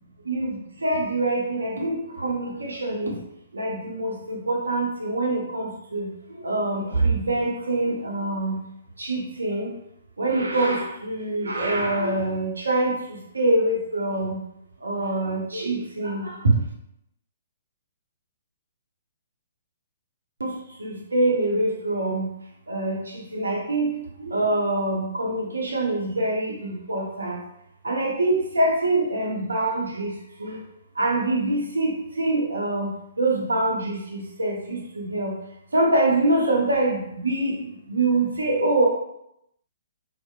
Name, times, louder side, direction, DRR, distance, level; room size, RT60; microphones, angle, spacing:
voice 1, 0.3-3.1 3.5-6.1 6.4-8.6 9.0-9.7 10.2-12.9 13.3-14.4 14.8-16.5 20.4-20.5 20.8-22.2 22.7-23.9 24.2-27.4 27.8-30.1 30.4-30.6 31.0-32.9 33.2-35.3 35.7-37.5 37.9-38.9, right 2 dB, 75° right, -1 dB, 0.6 m, -24 dB
2.7 x 2.0 x 2.3 m, 0.79 s
figure-of-eight pair, 125°, 0 cm